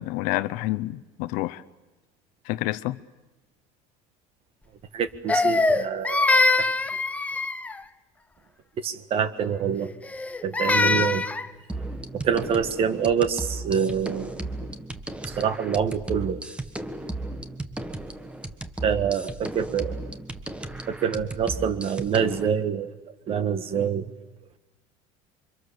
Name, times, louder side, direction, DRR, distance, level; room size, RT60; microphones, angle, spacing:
voice 1, 0.0-1.6 2.4-3.0, left 18 dB, 70° left, 1.0 m, -28 dB
voice 2, 4.9-6.6 8.8-9.9 10.4-11.3 12.1-14.5 15.3-16.4 18.8-20.0 20.9-22.9 23.3-24.1, right 7 dB, 40° right, 1.6 m, -26 dB
Crying sobbing, 5.3-7.8 10.0-11.5, left 3 dB, 10° left, 0.8 m, -23 dB
sound 1, 11.7-22.5, right 2 dB, 10° right, 1.3 m, -35 dB
28.0 x 25.0 x 6.9 m
cardioid pair, 145°, 14 cm